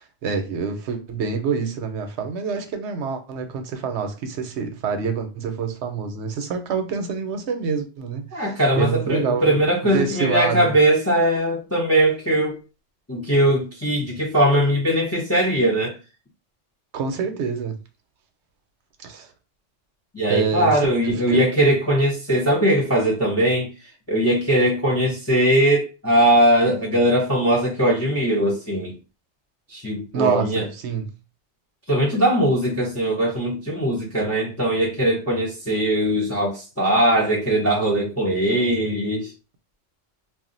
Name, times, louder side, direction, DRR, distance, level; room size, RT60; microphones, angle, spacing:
voice 1, 0.0-10.7 16.9-17.7 19.0-19.3 20.3-21.4 30.1-31.1, right 6 dB, 75° right, 0.8 m, -26 dB
voice 2, 8.3-12.6 13.1-16.0 20.1-23.7 24.1-29.0 29.7-30.7 31.9-39.3, right 1 dB, 25° left, 0.3 m, -20 dB
2.4 x 2.0 x 3.7 m
omnidirectional pair, 1.2 m